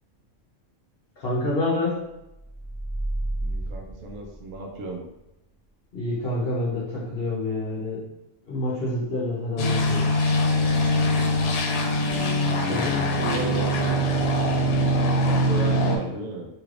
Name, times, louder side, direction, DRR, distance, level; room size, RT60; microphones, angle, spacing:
voice 1, 1.2-2.0 5.9-8.0 8.4-10.1 12.6-12.9, left 2 dB, 55° left, -4 dB, 0.8 m, -27 dB
sound 1, 2.3-4.9, right 1 dB, 15° left, 0.3 m, -32 dB
voice 2, 3.4-5.0 12.4-14.0 15.3-16.5, right 1 dB, 70° right, 2 dB, 0.9 m, -34 dB
sound 2, 9.6-16.0, equal, 85° left, 1.0 m, -22 dB
3.1 x 3.0 x 2.4 m, 0.92 s
omnidirectional pair, 1.4 m